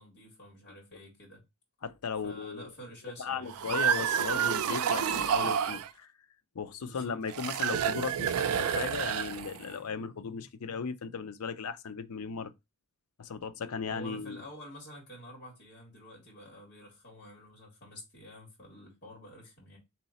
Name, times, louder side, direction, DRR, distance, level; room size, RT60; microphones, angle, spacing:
voice 1, 0.0-1.4 2.2-3.6 6.9-7.2 13.9-19.8, equal, 45° left, 2.0 m, -49 dB
voice 2, 1.8-2.7 3.2-6.1 6.5-12.5 13.2-14.4, left 5 dB, 75° left, 0.5 m, -36 dB
sound 1, 3.5-5.9 7.3-9.7, right 8 dB, 70° right, 0.4 m, -29 dB
3.8 x 2.9 x 4.1 m
head